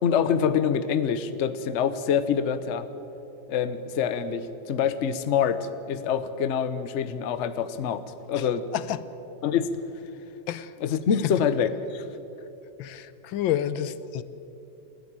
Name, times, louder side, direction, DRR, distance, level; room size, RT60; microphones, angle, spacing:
voice 1, 0.0-2.9 3.5-8.0 8.3-8.7 9.4-9.7 10.8-12.0, left 7 dB, 50° left, 12 dB, 0.9 m, -25 dB
voice 2, 12.8-14.2, left 11 dB, 85° left, 15 dB, 1.5 m, -29 dB
29.5 x 10.5 x 8.9 m, 2.9 s
omnidirectional pair, 2.1 m